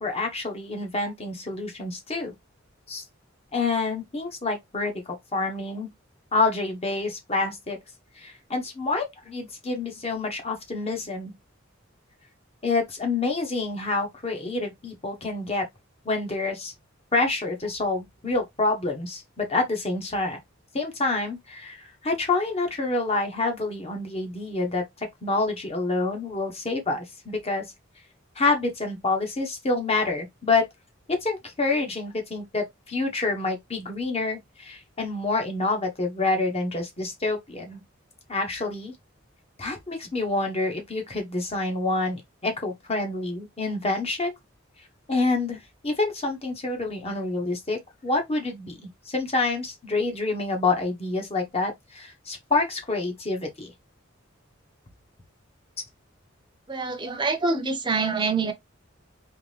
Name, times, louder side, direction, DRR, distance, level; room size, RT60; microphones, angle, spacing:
voice 1, 0.0-2.3 2.9-3.0 3.5-5.9 6.3-7.8 8.2-11.3 12.6-15.6 16.0-16.7 17.1-20.4 20.7-27.6 28.4-30.6 31.1-37.8 38.3-38.9 39.6-44.3 45.1-48.8 49.1-53.7, left 3 dB, 30° left, 1.2 m, -27 dB
voice 2, 56.7-58.5, right 4 dB, 25° right, 0.8 m, -25 dB
3.7 x 3.2 x 3.3 m
head